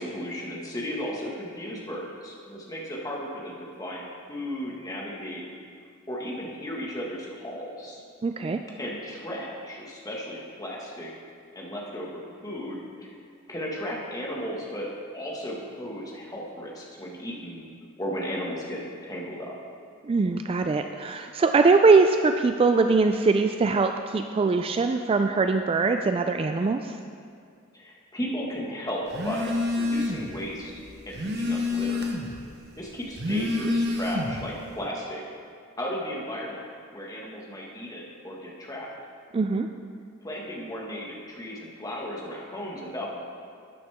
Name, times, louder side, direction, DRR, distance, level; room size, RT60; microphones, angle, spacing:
voice 1, 0.0-5.4 6.1-8.0 8.8-11.1 11.5-13.1 13.5-14.9 15.1-17.6 18.0-19.5 27.7-29.5 29.8-30.7 31.1-32.0 32.8-35.2 35.8-36.6 36.9-38.9 40.2-43.1, equal, 20° left, -3 dB, 1.7 m, -35 dB
voice 2, 8.2-8.6 20.0-27.0 39.3-39.7, right 4 dB, 30° right, 6 dB, 0.3 m, -22 dB
Telephone, 29.1-30.4 30.7-32.4 33.0-34.5, left 2 dB, 55° right, 1.0 m, -28 dB
12.5 x 9.3 x 3.6 m, 2.2 s
head